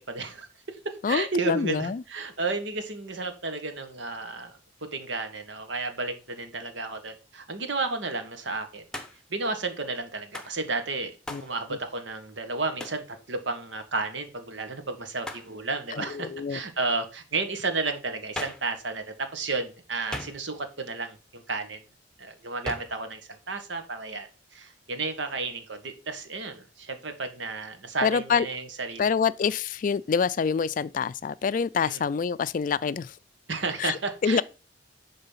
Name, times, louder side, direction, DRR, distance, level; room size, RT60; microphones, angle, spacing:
voice 1, 0.1-8.8 9.3-11.1 11.4-21.8 22.2-29.3 31.8-32.0 33.5-34.4, right 3 dB, 80° right, 1.5 m, -32 dB
voice 2, 1.0-2.0 11.3-11.4 15.9-16.6 28.0-28.5 29.0-33.1 33.8-34.4, left 6 dB, 45° left, 0.3 m, -26 dB
Hands, 8.9-9.3 10.3-10.6 11.3-11.5 12.8-13.1 15.2-15.5 18.3-18.7 20.1-20.7 22.6-23.0, left 1 dB, 5° left, 0.9 m, -38 dB
10.5 x 4.0 x 5.6 m
head